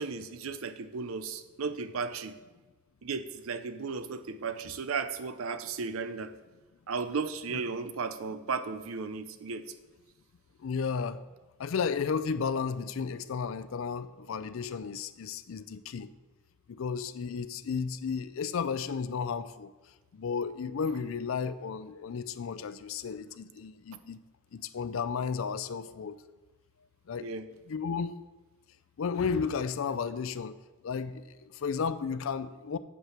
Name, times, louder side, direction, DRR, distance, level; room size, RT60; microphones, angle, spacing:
voice 1, 0.0-2.3 3.0-6.3 6.9-9.6 27.2-27.4, right 5 dB, 85° right, 11 dB, 0.6 m, -35 dB
voice 2, 10.6-11.2 11.6-16.1 16.7-19.7 20.1-24.2 24.5-26.2 27.1-27.4 27.7-28.2 29.0-30.6 30.8-32.8, left 6 dB, 75° left, 13 dB, 0.4 m, -33 dB
7.5 x 5.6 x 5.8 m, 1.2 s
head